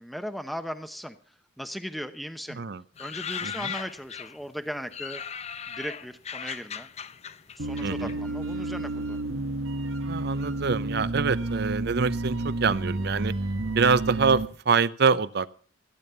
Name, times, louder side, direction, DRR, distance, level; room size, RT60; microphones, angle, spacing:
voice 1, 0.0-2.6 3.0-5.2 5.7-6.9 7.6-9.2, equal, ahead, 9 dB, 0.8 m, -37 dB
voice 2, 2.5-2.8 3.4-3.7 7.8-8.2 10.1-13.4 13.7-15.5, right 5 dB, 55° right, 17 dB, 0.6 m, -25 dB
sound 1, 3.0-4.5 4.9-8.8 9.0-9.9 10.6-11.1 11.4-11.5 11.7-14.0 14.3-14.4, left 7 dB, 35° left, 0.6 m, -38 dB
sound 2, 7.6-14.5, right 2 dB, 80° right, 1.2 m, -30 dB
15.5 x 9.0 x 6.8 m, 0.43 s
head